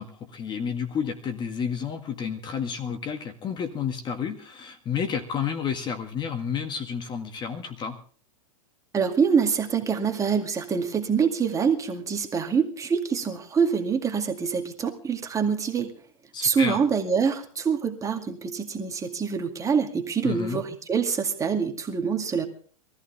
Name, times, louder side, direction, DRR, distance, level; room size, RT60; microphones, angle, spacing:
voice 1, 0.0-8.0 16.3-16.8 20.2-20.6, left 7 dB, 25° left, 8 dB, 1.8 m, -31 dB
voice 2, 8.9-15.9 16.4-22.5, right 6 dB, 20° right, 4 dB, 2.1 m, -25 dB
22.5 x 14.5 x 3.4 m, 0.42 s
hypercardioid pair, 120°, 18 cm